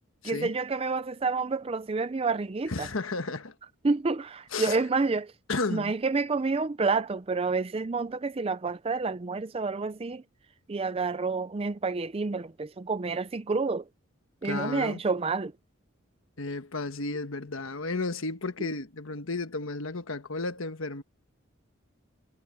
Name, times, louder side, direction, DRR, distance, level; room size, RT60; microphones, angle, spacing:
voice 1, 0.2-2.9 3.8-5.3 5.7-10.2 10.7-13.8 14.4-15.5, right 4 dB, 25° right, 0.4 m, -29 dB
voice 2, 2.7-3.5 4.5-4.8 5.5-5.9 14.4-15.0 16.4-21.0, left 3 dB, 70° left, 1.3 m, -33 dB
head